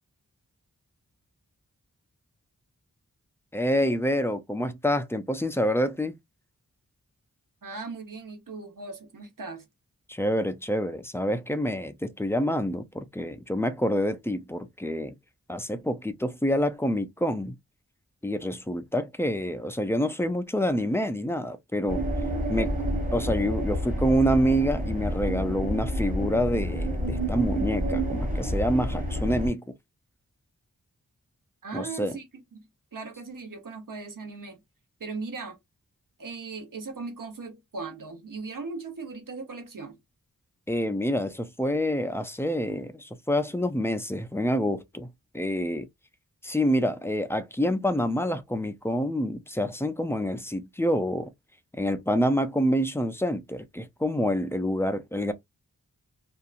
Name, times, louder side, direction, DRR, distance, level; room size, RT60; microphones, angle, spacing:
voice 1, 3.5-6.1 10.1-15.1 15.5-17.6 18.2-22.1 22.5-22.7 23.1-29.7 31.7-32.2 40.7-45.1 45.3-45.9 46.4-51.3 51.7-55.3, equal, 10° left, 0.3 m, -27 dB
voice 2, 7.6-9.7 31.6-32.3 32.5-34.6 35.0-35.6 36.2-40.0, right 4 dB, 70° right, 1.0 m, -38 dB
sound 1, 21.9-29.5, equal, 25° right, 1.2 m, -29 dB
2.7 x 2.3 x 2.4 m
wide cardioid pair, 90°, 33 cm